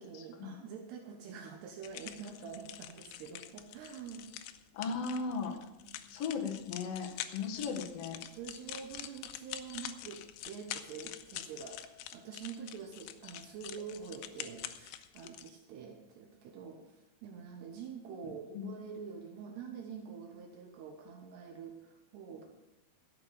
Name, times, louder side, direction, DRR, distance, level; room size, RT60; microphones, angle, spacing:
voice 1, 0.0-4.3 5.8-6.0 7.4-7.8 8.3-11.8 12.1-22.5, right 6 dB, 75° right, 3 dB, 3.2 m, -46 dB
sound 1, 1.8-15.5, left 12 dB, 90° left, 2.8 m, -46 dB
voice 2, 4.7-5.5 6.1-8.2 18.5-18.7, left 5 dB, 55° left, 1 dB, 1.9 m, -36 dB
13.0 x 8.6 x 6.7 m, 0.91 s
omnidirectional pair, 4.9 m